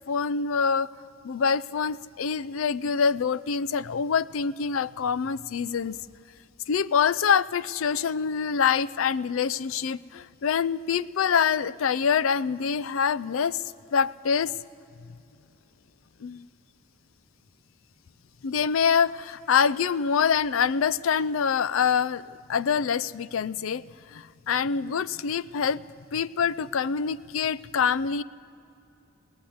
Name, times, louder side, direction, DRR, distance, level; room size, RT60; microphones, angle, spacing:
voice 1, 0.1-0.9 1.2-6.0 6.7-13.6 13.9-14.5 16.2-16.4 18.4-23.8 24.1-25.8 26.1-28.2, left 6 dB, 70° left, 18 dB, 0.4 m, -25 dB
21.5 x 17.0 x 7.9 m, 2.6 s
head